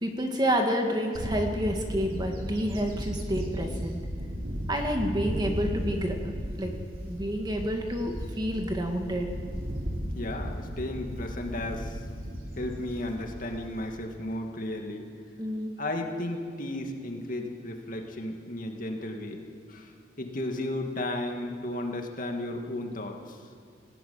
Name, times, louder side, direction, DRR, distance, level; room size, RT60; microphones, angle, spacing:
voice 1, 0.0-4.0 4.7-6.2 6.6-6.7 7.1-9.3 15.4-15.7, equal, 25° right, 2 dB, 2.1 m, -29 dB
Bird / Wind, 1.1-13.9, equal, 50° right, 3.3 m, -35 dB
voice 2, 10.1-12.0 12.6-15.1 15.8-19.4 19.7-19.9 20.2-23.4, left 1 dB, 50° left, 2 dB, 2.4 m, -34 dB
18.5 x 16.5 x 9.7 m, 2.3 s
head